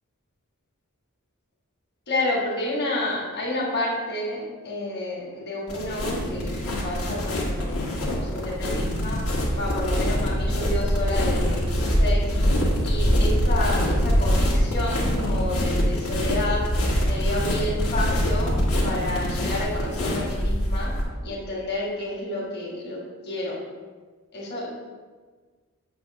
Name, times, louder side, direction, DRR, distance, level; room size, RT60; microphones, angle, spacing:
voice 1, 2.1-9.2 9.5-12.3 12.8-16.7 17.0-18.5 18.8-20.9 21.2-23.6 24.3-24.7, left 2 dB, 50° left, -4 dB, 1.6 m, -30 dB
sound 1, 5.7-21.0, equal, 75° left, 1.4 m, -24 dB
7.6 x 2.8 x 5.9 m, 1.4 s
head